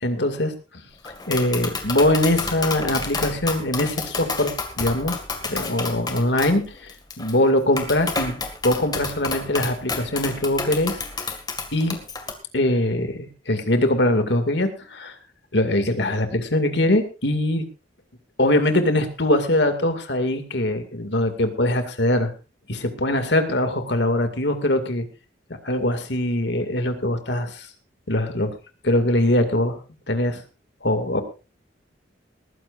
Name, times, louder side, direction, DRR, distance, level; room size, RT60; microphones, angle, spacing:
voice 1, 0.0-0.5 1.3-4.5 4.8-5.2 5.4-8.4 8.6-11.0 11.7-12.0 12.5-15.1 15.5-17.6 18.4-22.3 22.7-25.0 25.6-27.7 28.1-28.5 28.8-29.8 30.1-30.4 30.8-31.2, left 1 dB, 65° left, 7 dB, 2.3 m, -22 dB
Tap, 1.0-12.3, left 4 dB, 20° left, 2.0 m, -30 dB
20.0 x 15.0 x 2.6 m, 0.31 s
head